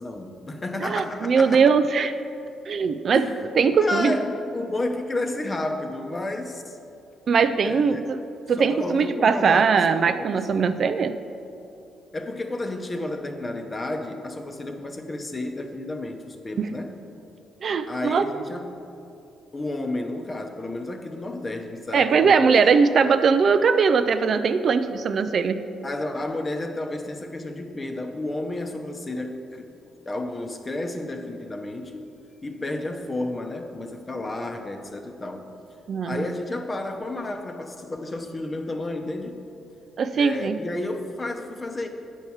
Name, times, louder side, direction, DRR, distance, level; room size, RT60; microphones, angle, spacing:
voice 1, 0.0-1.7 3.1-3.5 3.8-6.8 7.6-8.1 8.6-10.7 12.1-17.0 17.8-18.8 19.5-22.6 25.8-29.7 30.1-32.1 32.4-35.5 36.1-39.3 40.1-41.9, left 2 dB, 25° left, 4 dB, 0.8 m, -31 dB
voice 2, 0.8-2.1 2.7-3.3 3.6-4.2 7.3-8.2 8.5-11.2 16.6-16.7 17.6-18.4 21.9-25.7 35.9-36.3 40.0-40.6, right 5 dB, 55° right, 10 dB, 0.3 m, -20 dB
9.0 x 4.6 x 7.1 m, 2.7 s
cardioid pair, 90°, 0 cm